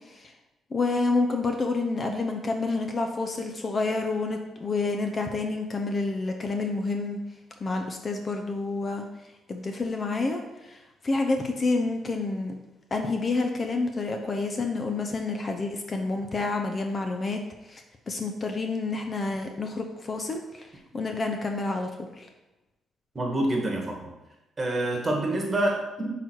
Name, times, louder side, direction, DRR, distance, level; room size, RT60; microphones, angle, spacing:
voice 1, 0.7-7.2 7.6-9.1 9.5-12.5 12.9-17.4 17.7-20.7 20.9-22.3, left 3 dB, 35° left, 4 dB, 0.7 m, -29 dB
voice 2, 23.1-24.1 24.6-26.1, right 1 dB, 25° right, 1 dB, 1.6 m, -27 dB
6.0 x 4.0 x 4.5 m, 0.99 s
cardioid pair, 90°, 0 cm